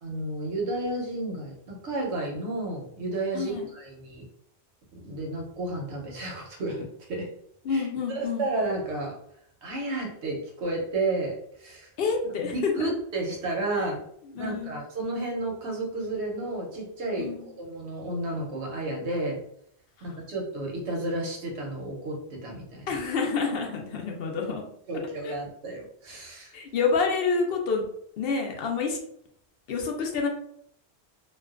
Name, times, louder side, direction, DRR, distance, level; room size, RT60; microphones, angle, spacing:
voice 1, 0.0-4.2 5.0-7.3 7.7-9.2 9.6-11.9 12.4-14.0 14.4-17.3 17.6-19.4 20.0-22.9 24.9-26.5, right 2 dB, 90° right, -1 dB, 1.0 m, -32 dB
voice 2, 3.3-3.7 7.6-8.5 12.0-12.9 14.3-14.8 17.2-17.5 22.9-24.6 25.2-25.3 26.5-27.8 28.2-29.0 29.7-30.3, left 5 dB, 65° left, 1 dB, 0.7 m, -28 dB
2.4 x 2.2 x 2.3 m, 0.68 s
omnidirectional pair, 1.1 m